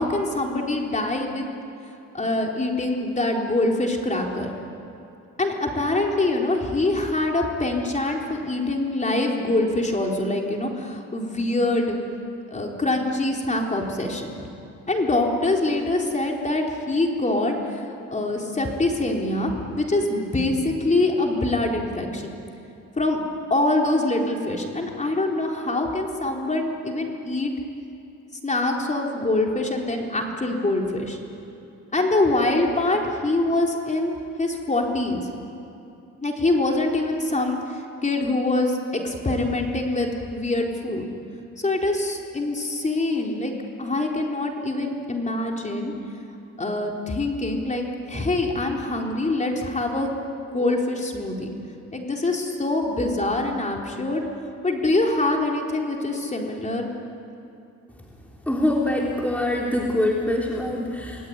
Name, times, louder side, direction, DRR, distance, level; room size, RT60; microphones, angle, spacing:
voice 1, 0.0-1.5 2.1-4.5 5.4-12.0 12.5-14.4 14.9-17.8 18.1-22.3 23.0-23.2 23.5-27.5 28.4-31.2 31.9-35.2 36.2-37.6 38.0-41.0 41.6-43.5 43.8-45.9 46.6-50.1 50.5-51.5 51.9-54.2 54.6-56.9, left 2 dB, 25° left, 1 dB, 4.2 m, -24 dB
voice 2, 58.5-61.3, left 1 dB, 5° left, -2 dB, 3.5 m, -24 dB
27.0 x 19.5 x 9.8 m, 2.8 s
cardioid pair, 90°, 30 cm